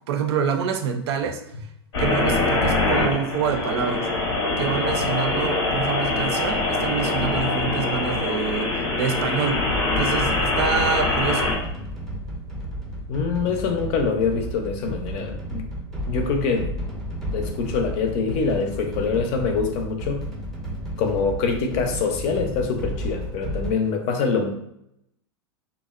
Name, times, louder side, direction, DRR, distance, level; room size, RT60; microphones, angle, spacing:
voice 1, 0.1-1.4 2.0-4.1 4.6-9.6 10.0-11.5, right 7 dB, 75° right, 6 dB, 0.4 m, -26 dB
sound 1, 1.9-11.5, left 2 dB, 80° left, 0.8 m, -23 dB
sound 2, 9.6-23.7, equal, 5° left, 0.5 m, -32 dB
voice 2, 13.1-15.7 16.1-16.7 17.3-20.3 21.0-24.5, left 5 dB, 50° left, 4 dB, 0.5 m, -24 dB
2.6 x 2.0 x 2.4 m, 0.77 s
hypercardioid pair, 115°, 14 cm